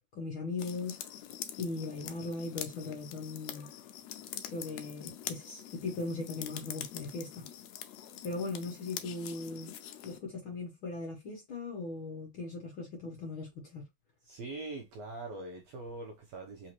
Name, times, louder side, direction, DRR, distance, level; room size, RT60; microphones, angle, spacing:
voice 1, 0.1-1.0 1.6-3.7 4.5-7.5 8.2-9.7 10.0-13.8, left 3 dB, 55° left, 1.6 m, -39 dB
sound 1, 0.6-10.2, left 10 dB, 80° left, 1.6 m, -45 dB
voice 2, 14.3-16.7, right 2 dB, 70° right, 1.8 m, -42 dB
5.0 x 2.8 x 3.0 m
omnidirectional pair, 3.7 m